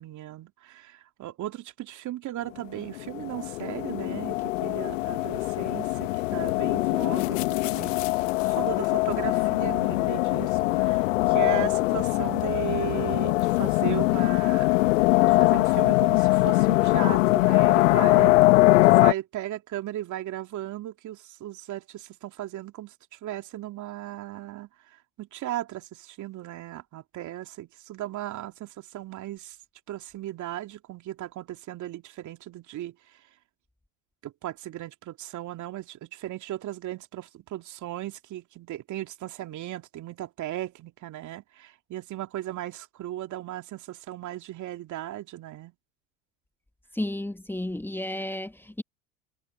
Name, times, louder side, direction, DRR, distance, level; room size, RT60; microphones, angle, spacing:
voice 1, 0.0-8.0 8.4-14.8 15.3-18.5 18.8-29.6 29.9-33.2 34.2-45.7, right 13 dB, 50° right, 2.9 m, -36 dB
sound 1, 2.9-19.1, left 19 dB, 75° left, 1.8 m, -22 dB
voice 2, 46.9-48.8, left 1 dB, 5° left, 2.1 m, -32 dB
hypercardioid pair, 75°, 39 cm